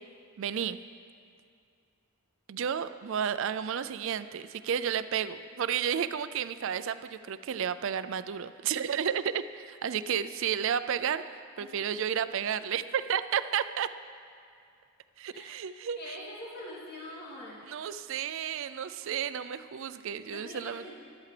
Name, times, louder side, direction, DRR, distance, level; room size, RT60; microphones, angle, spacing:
voice 1, 0.4-0.8 2.5-13.9 15.2-16.0 17.7-20.9, right 8 dB, 60° right, 13 dB, 0.4 m, -32 dB
voice 2, 11.6-12.1 15.3-15.5 15.9-17.6 20.3-20.9, left 1 dB, 45° left, -7 dB, 2.6 m, -44 dB
14.0 x 12.0 x 3.3 m, 2.3 s
head